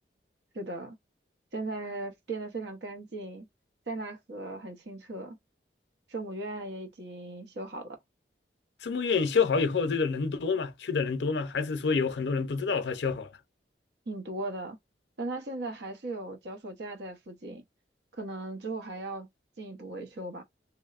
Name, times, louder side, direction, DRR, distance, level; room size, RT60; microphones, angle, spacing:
voice 1, 0.5-1.0 1.5-3.5 3.9-5.4 6.1-8.0 14.1-14.8 15.2-17.6 18.1-19.3 19.6-20.4, right 2 dB, 75° right, 0.7 m, -37 dB
voice 2, 8.8-13.3, left 5 dB, 80° left, 0.5 m, -28 dB
2.9 x 2.0 x 2.4 m
head